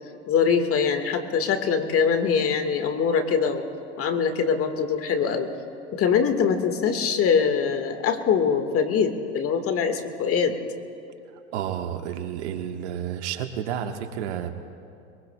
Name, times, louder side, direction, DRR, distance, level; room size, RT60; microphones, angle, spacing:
voice 1, 0.3-3.6 4.0-5.5 5.9-10.6, left 6 dB, 40° left, 7 dB, 1.6 m, -23 dB
voice 2, 11.5-14.5, right 9 dB, 80° right, 6 dB, 1.3 m, -31 dB
24.0 x 22.5 x 2.2 m, 2.5 s
hypercardioid pair, 100°, 34 cm